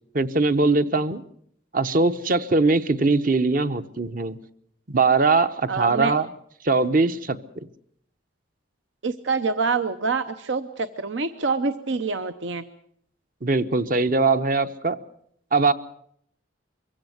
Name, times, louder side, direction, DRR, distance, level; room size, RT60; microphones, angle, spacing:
voice 1, 0.1-1.2 1.7-4.4 4.9-6.3 6.6-7.4 13.4-15.0 15.5-15.7, right 3 dB, 45° right, 12 dB, 0.9 m, -21 dB
voice 2, 5.7-6.1 9.0-12.6, right 4 dB, 75° right, 11 dB, 0.8 m, -26 dB
23.0 x 16.5 x 8.0 m, 0.68 s
head